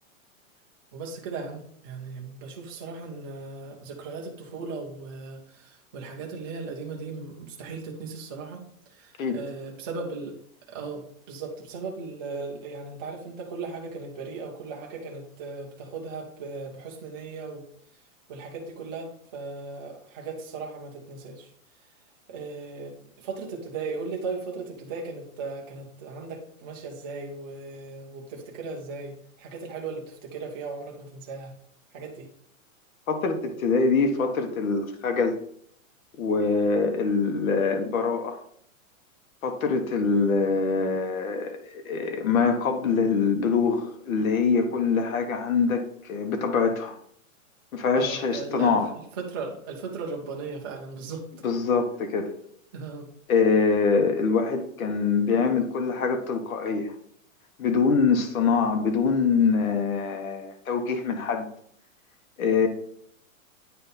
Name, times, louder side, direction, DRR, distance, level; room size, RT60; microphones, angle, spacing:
voice 1, 0.9-5.4 5.9-8.6 9.0-10.3 10.7-17.6 18.3-21.5 22.3-22.9 23.2-31.5 31.9-32.3 48.0-48.8 49.2-51.2 52.7-53.1, right 4 dB, 20° right, -1 dB, 0.4 m, -37 dB
voice 2, 33.1-35.4 36.2-38.4 39.4-47.0 47.7-48.9 51.4-52.3 53.3-56.9 57.6-61.5 62.4-62.7, left 5 dB, 75° left, 6 dB, 1.3 m, -24 dB
8.9 x 3.5 x 4.1 m, 0.65 s
supercardioid pair, 160°, 41 cm